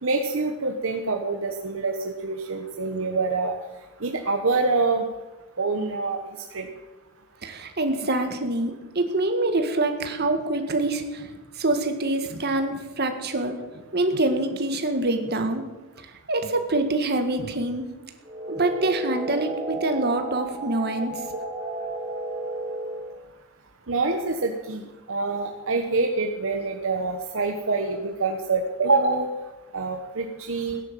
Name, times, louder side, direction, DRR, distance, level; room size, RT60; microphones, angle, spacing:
voice 1, 0.0-3.5 4.0-5.0 5.6-6.2 6.5-6.7 23.9-24.8 25.1-29.3 29.7-30.8, right 3 dB, 65° right, 3 dB, 1.3 m, -25 dB
voice 2, 7.4-11.3 11.6-13.6 13.9-15.7 16.3-17.8 18.5-21.2, right 2 dB, 50° right, 6 dB, 1.9 m, -25 dB
sound 1, 18.2-23.2, right 2 dB, 20° right, 2.1 m, -33 dB
17.5 x 10.5 x 7.6 m, 1.2 s
head